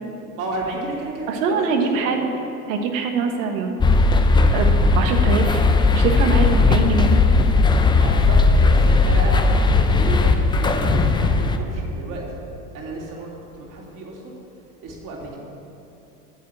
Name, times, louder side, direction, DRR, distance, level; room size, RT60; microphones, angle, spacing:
voice 1, 0.3-2.2 7.9-8.4 8.6-12.4 12.7-14.3 14.8-15.4, right 1 dB, 45° right, -3 dB, 3.2 m, -32 dB
voice 2, 1.3-2.2 2.7-3.7 4.5-4.7 4.9-5.6 5.9-7.1, right 5 dB, 60° right, 4 dB, 1.5 m, -23 dB
sound 1, 3.8-11.6, left 3 dB, 10° left, 0.5 m, -17 dB
9.4 x 7.4 x 8.7 m, 2.9 s
hypercardioid pair, 90°, 45 cm